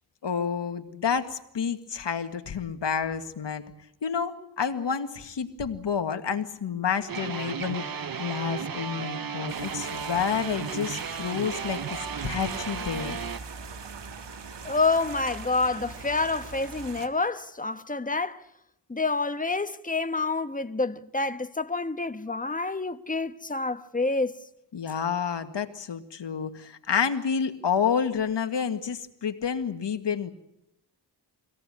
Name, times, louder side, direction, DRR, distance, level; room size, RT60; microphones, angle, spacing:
voice 1, 0.2-3.6 4.0-13.2 24.7-30.3, left 7 dB, 75° left, 2.0 m, -29 dB
sound 1, 7.1-13.4, right 6 dB, 50° right, 1.1 m, -34 dB
sound 2, 9.5-17.1, right 5 dB, 70° right, 1.9 m, -41 dB
voice 2, 14.6-18.4 18.9-24.4, left 3 dB, 20° left, 1.3 m, -28 dB
24.5 x 17.5 x 9.9 m
cardioid pair, 65°, 43 cm